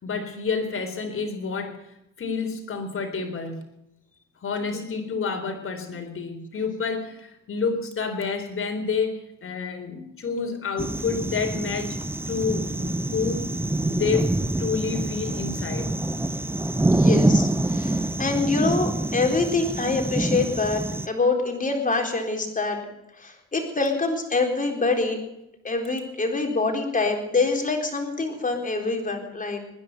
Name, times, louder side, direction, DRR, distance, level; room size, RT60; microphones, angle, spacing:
voice 1, 0.0-1.9 2.2-3.7 4.4-12.0 12.3-13.4 13.9-14.3 14.6-15.9, left 5 dB, 45° left, 5 dB, 4.0 m, -29 dB
sound 1, 10.8-21.1, right 2 dB, 10° right, 0.7 m, -25 dB
voice 2, 16.9-22.8 23.2-25.2 25.6-29.6, left 3 dB, 25° left, 3 dB, 4.1 m, -25 dB
20.0 x 10.5 x 6.8 m, 0.84 s
cardioid pair, 90°, 30 cm